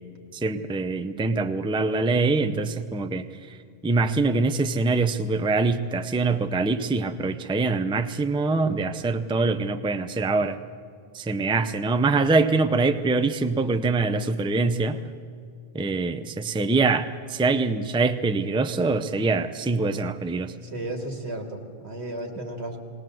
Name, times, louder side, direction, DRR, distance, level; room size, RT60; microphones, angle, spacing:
voice 1, 0.3-3.6 3.8-10.6 11.1-15.0 15.7-20.5, right 3 dB, 5° right, 9 dB, 0.5 m, -24 dB
voice 2, 20.7-22.8, right 1 dB, 90° right, 3 dB, 2.4 m, -34 dB
20.0 x 18.5 x 7.7 m, 2.3 s
omnidirectional pair, 1.1 m